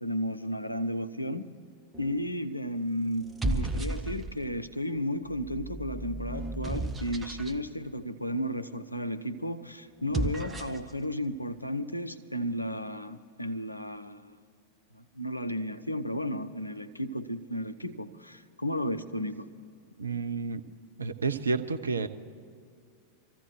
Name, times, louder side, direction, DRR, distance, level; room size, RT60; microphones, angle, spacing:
voice 1, 0.0-1.5 2.0-14.4 14.9-19.5, equal, 85° left, 0.6 m, -33 dB
sound 1, 1.9-2.4 3.2-4.5 5.3-7.6 9.9-10.9, right 2 dB, 10° right, 0.9 m, -34 dB
voice 2, 20.0-20.6 21.0-22.1, right 4 dB, 75° right, 0.6 m, -30 dB
25.0 x 15.0 x 3.2 m
figure-of-eight pair, 90°, 0 cm